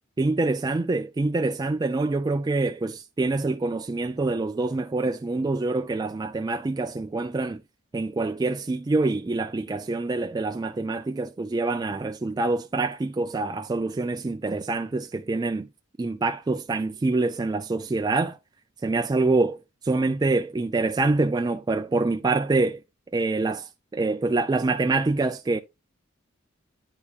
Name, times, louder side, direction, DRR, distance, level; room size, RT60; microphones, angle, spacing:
voice 1, 0.2-7.6 7.9-15.7 16.0-18.4 18.8-19.6 19.8-22.8 23.1-25.6, right 3 dB, 20° right, 0.3 m, -25 dB
9.6 x 4.3 x 2.4 m
head